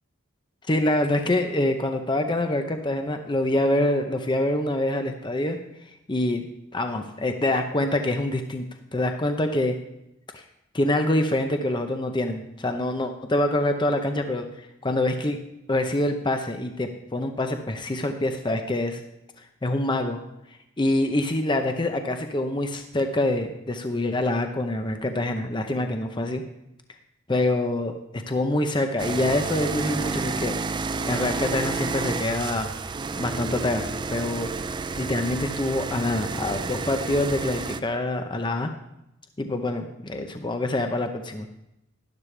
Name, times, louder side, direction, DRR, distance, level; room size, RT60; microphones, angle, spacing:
voice 1, 0.7-5.6 6.1-6.5 6.7-8.6 8.9-9.8 10.3-10.4 10.7-15.4 15.7-19.0 19.6-20.2 20.8-26.4 27.3-27.9 28.3-30.6 31.1-32.7 33.2-34.5 34.9-38.7 39.4-41.5, left 1 dB, 20° left, 6 dB, 0.7 m, -25 dB
sound 1, 29.0-37.8, right 4 dB, 20° right, 0.3 m, -30 dB
12.0 x 11.5 x 3.3 m, 0.85 s
head